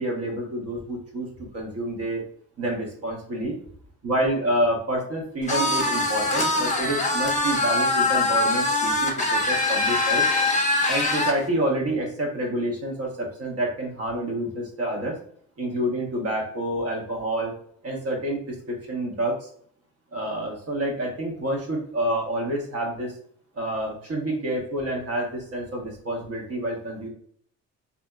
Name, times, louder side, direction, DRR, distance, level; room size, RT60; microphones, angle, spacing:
voice 1, 0.0-2.2 2.6-3.6 4.0-10.2 10.9-15.2 15.6-17.5 17.8-19.5 20.1-23.2 23.5-27.1, right 1 dB, 50° right, 0 dB, 1.1 m, -28 dB
sound 1, 5.5-11.4, left 2 dB, 25° left, 0.8 m, -23 dB
2.8 x 2.5 x 2.3 m, 0.62 s
cardioid pair, 90°, 30 cm